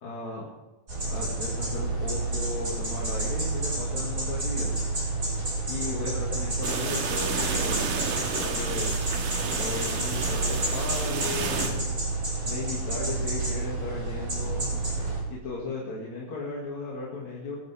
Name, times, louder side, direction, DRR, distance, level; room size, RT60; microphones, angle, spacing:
voice 1, 0.0-0.5 1.1-4.7 5.7-8.0 8.3-8.9 9.4-11.8 12.4-14.7 15.3-17.6, left 3 dB, 50° left, -5 dB, 3.5 m, -36 dB
Hummingbird Chirps, 0.9-15.2, right 2 dB, 20° right, 6.5 m, -29 dB
sound 1, 6.6-11.7, right 5 dB, 60° right, 3.0 m, -31 dB
22.0 x 14.5 x 3.7 m, 1.1 s
omnidirectional pair, 4.5 m